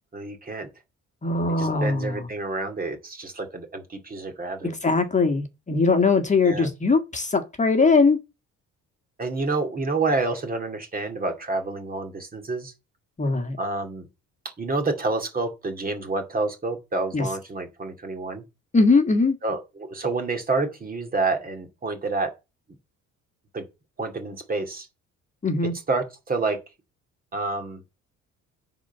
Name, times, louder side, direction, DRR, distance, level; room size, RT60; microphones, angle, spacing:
voice 1, 0.1-0.7 1.5-4.8 6.4-6.7 9.2-12.7 13.6-14.1 14.6-18.4 19.4-22.3 23.5-23.6 24.0-24.9 25.6-26.6 27.3-27.8, right 3 dB, 30° right, 2.3 m, -28 dB
voice 2, 1.2-2.3 4.6-8.2 13.2-13.6 17.1-17.2 18.7-19.4 25.4-25.7, left 4 dB, 25° left, 1.6 m, -21 dB
9.9 x 4.1 x 6.7 m
cardioid pair, 110°, 30 cm